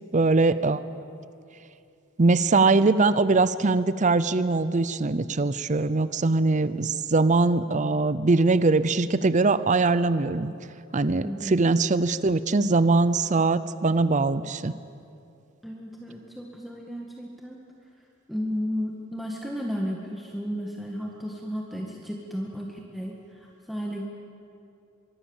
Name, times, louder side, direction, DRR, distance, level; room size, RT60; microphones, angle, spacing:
voice 1, 0.1-0.8 2.2-10.5 10.9-14.7, right 3 dB, 40° right, 15 dB, 0.6 m, -22 dB
voice 2, 11.2-11.6 15.6-17.6 18.3-24.1, equal, ahead, -2 dB, 1.8 m, -33 dB
24.0 x 23.0 x 7.3 m, 2.6 s
head